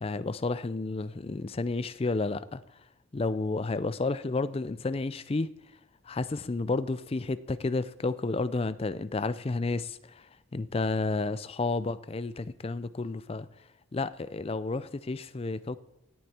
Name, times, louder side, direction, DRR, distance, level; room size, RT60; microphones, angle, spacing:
voice 1, 0.0-2.6 3.1-5.5 6.1-10.3 10.5-13.5 13.9-15.8, left 3 dB, 30° left, 0.4 m, -31 dB
17.0 x 7.9 x 4.3 m
head